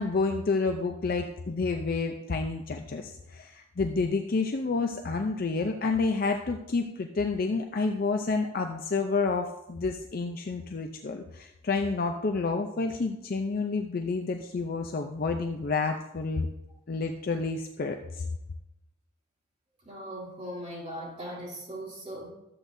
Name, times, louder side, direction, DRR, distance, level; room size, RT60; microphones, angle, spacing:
voice 1, 0.0-16.5 16.9-18.2, left 4 dB, 45° left, 4 dB, 0.5 m, -29 dB
voice 2, 19.8-22.3, equal, 30° right, -7 dB, 3.1 m, -39 dB
12.5 x 7.7 x 2.7 m, 0.90 s
head